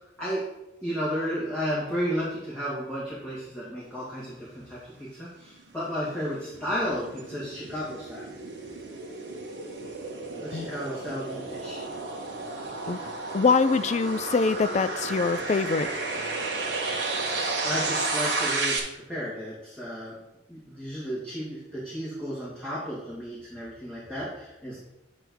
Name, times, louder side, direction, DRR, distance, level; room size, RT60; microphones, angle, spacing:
voice 1, 0.8-8.3 10.4-11.8 17.6-20.2 20.5-24.8, equal, ahead, -10 dB, 2.3 m, -33 dB
sound 1, 5.6-18.8, right 3 dB, 60° right, 1.4 m, -32 dB
voice 2, 12.9-15.9, left 4 dB, 35° left, 12 dB, 0.3 m, -24 dB
9.7 x 3.4 x 6.3 m, 0.93 s
head